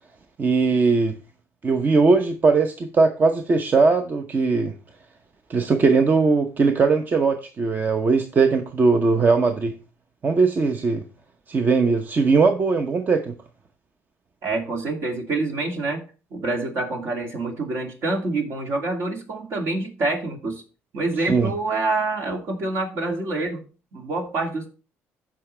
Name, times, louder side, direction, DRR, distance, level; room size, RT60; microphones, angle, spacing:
voice 1, 0.4-1.2 1.6-4.7 5.5-9.7 10.2-11.0 11.5-13.3 21.3-21.5, right 4 dB, 35° right, 0.8 m, -19 dB
voice 2, 14.4-16.0 16.3-20.6 20.9-23.6 23.9-24.7, right 2 dB, 60° right, 2.6 m, -26 dB
14.0 x 5.0 x 3.3 m
cardioid pair, 95°, 5 cm